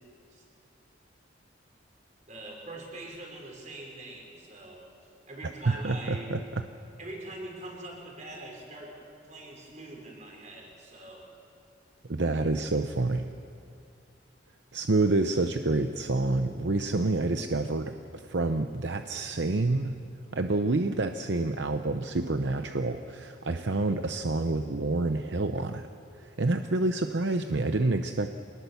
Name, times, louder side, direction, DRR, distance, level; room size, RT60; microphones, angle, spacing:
voice 1, 2.3-4.8 5.3-6.3 7.0-8.9 9.2-11.3, right 2 dB, 40° right, 0 dB, 5.0 m, -43 dB
voice 2, 5.7-6.4 12.1-13.3 14.7-20.0 20.3-25.9 26.2-28.3, right 2 dB, 65° right, 7 dB, 0.8 m, -28 dB
25.0 x 19.5 x 7.1 m, 2.4 s
head